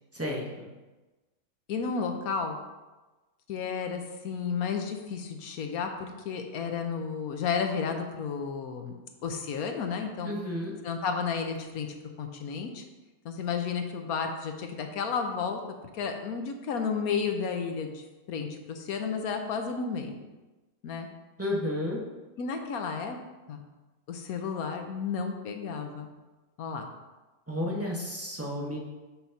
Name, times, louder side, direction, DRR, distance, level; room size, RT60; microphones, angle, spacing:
voice 1, 0.1-0.7 10.2-10.7 21.4-22.0 27.5-28.8, left 1 dB, 10° right, -3 dB, 0.9 m, -32 dB
voice 2, 1.7-2.6 3.5-10.3 10.8-11.9 12.2-12.8 13.2-15.6 15.9-20.2 20.8-21.1 22.4-23.2 23.5-23.6 24.1-26.1 26.6-26.9, left 5 dB, 70° left, 5 dB, 1.2 m, -32 dB
6.2 x 4.0 x 5.7 m, 1.2 s
omnidirectional pair, 1.6 m